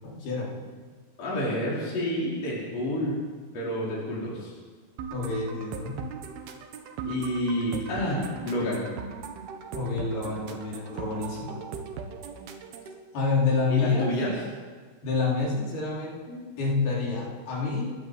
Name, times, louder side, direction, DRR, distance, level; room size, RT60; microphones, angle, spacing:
voice 1, 0.0-0.5 5.1-6.0 9.7-11.6 13.1-14.2 15.0-17.9, left 4 dB, 75° left, -3 dB, 6.5 m, -28 dB
voice 2, 1.2-3.2 3.5-4.5 7.1-8.2 8.4-8.8 13.7-14.3, equal, 40° left, -6 dB, 6.1 m, -29 dB
sound 1, 5.0-13.0, right 6 dB, 80° right, 3.5 m, -39 dB
29.5 x 11.0 x 8.2 m, 1.5 s
omnidirectional pair, 4.5 m